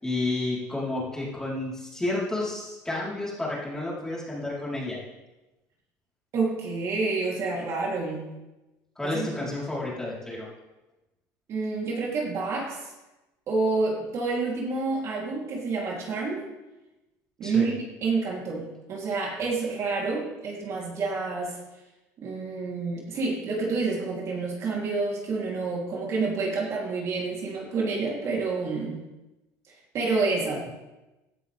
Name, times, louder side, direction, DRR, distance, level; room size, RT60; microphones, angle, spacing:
voice 1, 0.0-5.0 9.0-10.5 17.4-17.7, left 2 dB, 10° left, -6 dB, 4.5 m, -31 dB
voice 2, 6.3-8.3 9.0-9.3 11.5-12.8 13.5-16.4 17.4-17.7 18.0-21.6 22.2-29.0 29.7-30.7, right 3 dB, 45° right, -3 dB, 3.8 m, -28 dB
16.5 x 11.5 x 3.7 m, 1.0 s
cardioid pair, 130°, 7 cm